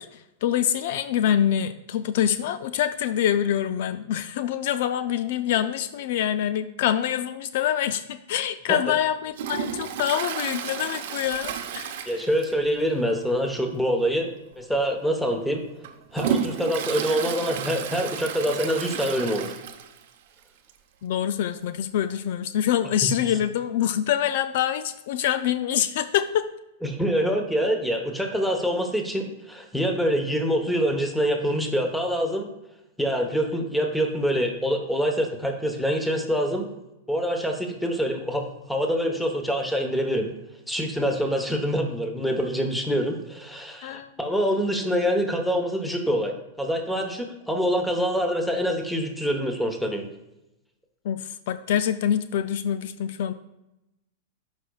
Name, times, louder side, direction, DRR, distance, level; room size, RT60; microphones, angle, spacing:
voice 1, 0.0-12.1 21.0-26.5 43.8-44.1 51.0-53.3, left 10 dB, 60° left, 12 dB, 0.3 m, -25 dB
Toilet flush, 9.3-12.8 13.1-13.2 13.6-13.7 14.5-14.6 15.2-20.1 20.4-20.5 20.7-20.8 21.8-21.9, right 8 dB, 65° right, 0.7 m, -32 dB
voice 2, 12.1-14.3 14.6-15.6 16.1-19.5 23.0-23.1 26.8-32.5 33.0-36.7 37.1-40.3 40.7-50.1, equal, ahead, 3 dB, 1.0 m, -25 dB
12.0 x 5.2 x 2.3 m, 0.93 s
supercardioid pair, 140°, 0 cm